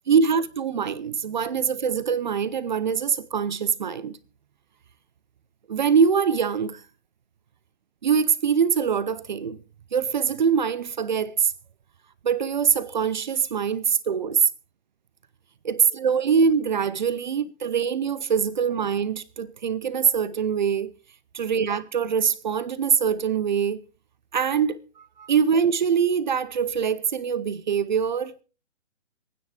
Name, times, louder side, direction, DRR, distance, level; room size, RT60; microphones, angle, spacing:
voice 1, 0.1-4.2 5.7-6.8 8.0-9.6 9.9-11.5 12.2-14.5 15.6-20.9 21.3-23.8 24.3-24.8 25.2-28.3, right 6 dB, 40° right, 0.6 m, -23 dB
25.5 x 9.6 x 3.3 m
figure-of-eight pair, 145°, 37 cm